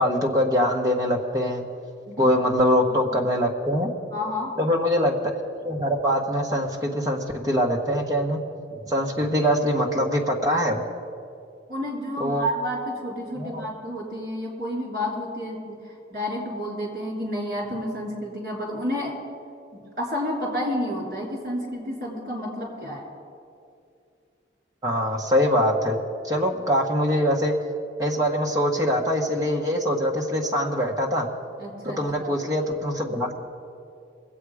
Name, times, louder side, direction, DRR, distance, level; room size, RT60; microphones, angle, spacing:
voice 1, 0.0-1.6 2.2-3.9 4.6-5.1 5.6-8.4 8.9-10.8 12.2-12.5 13.3-13.7 24.8-26.0 26.2-27.5 28.0-31.3 31.8-33.4, equal, 20° right, -1 dB, 1.2 m, -23 dB
voice 2, 4.1-4.5 8.7-8.9 11.7-15.6 16.1-19.1 20.0-23.0 31.6-32.3, equal, 50° right, -2 dB, 3.5 m, -30 dB
21.5 x 8.2 x 4.9 m, 2.5 s
head